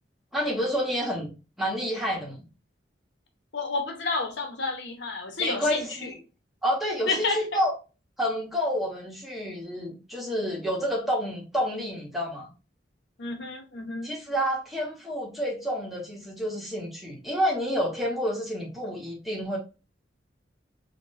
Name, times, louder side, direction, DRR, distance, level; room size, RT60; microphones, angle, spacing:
voice 1, 0.3-2.4 5.4-6.1 6.6-7.7 8.2-12.5 14.0-19.6, equal, ahead, 1.0 m, -29 dB
voice 2, 3.5-6.1 7.1-7.6 13.2-14.1, left 3 dB, 70° left, 0.8 m, -30 dB
5.8 x 2.2 x 2.6 m
head